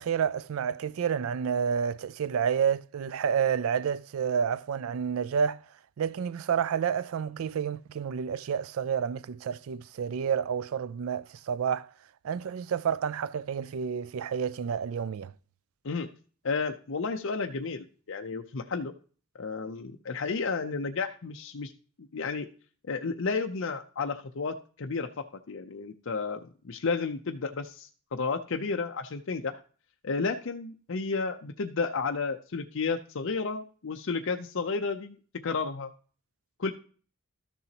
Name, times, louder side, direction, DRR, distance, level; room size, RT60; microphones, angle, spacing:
voice 1, 0.0-5.6 6.0-11.9 12.2-15.3, right 7 dB, 70° right, 0.4 m, -29 dB
voice 2, 16.4-18.9 19.4-21.7 22.1-22.5 22.9-25.1 25.5-26.4 26.6-29.6 30.0-35.2 35.4-35.9 36.6-36.7, left 4 dB, 60° left, 0.6 m, -32 dB
13.0 x 6.9 x 2.9 m
head